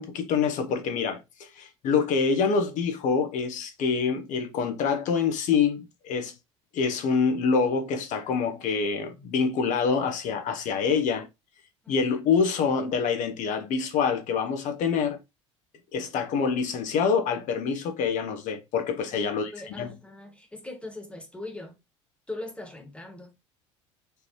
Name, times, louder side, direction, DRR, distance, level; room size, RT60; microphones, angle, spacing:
voice 1, 0.0-6.3 6.7-11.3 11.9-15.2 15.9-19.9, left 5 dB, 55° left, 1.2 m, -26 dB
voice 2, 19.1-21.7 22.3-23.3, left 2 dB, 5° left, 1.6 m, -40 dB
5.0 x 3.2 x 3.2 m
hypercardioid pair, 65°, 16 cm